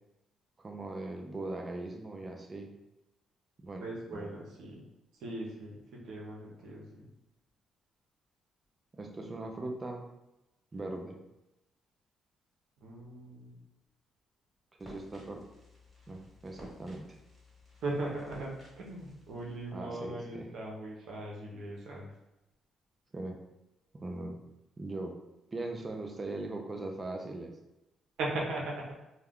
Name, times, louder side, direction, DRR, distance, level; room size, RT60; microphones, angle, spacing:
voice 1, 0.6-2.7 3.6-3.8 4.1-4.3 8.9-10.0 10.7-11.2 14.8-15.4 16.1-17.2 19.7-20.5 23.1-23.4 23.9-24.4 24.8-25.2 25.5-27.5, right 2 dB, 30° right, 3 dB, 0.5 m, -40 dB
voice 2, 3.8-4.8 5.2-7.0 12.8-13.6 17.8-22.1 28.2-28.9, right 2 dB, 80° right, -2 dB, 0.7 m, -39 dB
sound 1, 14.8-19.8, left 1 dB, ahead, 1.4 m, -55 dB
2.3 x 2.2 x 3.5 m, 0.96 s
cardioid pair, 90°, 0 cm